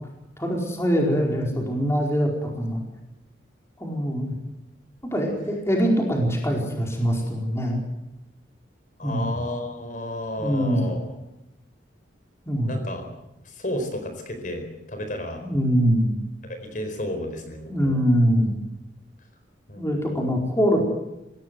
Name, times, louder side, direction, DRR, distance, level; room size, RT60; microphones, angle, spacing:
voice 1, 0.4-2.8 3.8-4.3 5.1-7.9 9.0-9.3 10.4-10.9 12.5-12.7 15.4-16.1 17.7-18.5 19.8-20.8, equal, 15° left, 0 dB, 4.6 m, -23 dB
voice 2, 9.0-11.0 12.7-13.0 13.4-15.4 16.4-18.0 19.7-19.9, left 1 dB, 45° left, 6 dB, 4.4 m, -32 dB
23.5 x 17.0 x 7.7 m, 0.93 s
head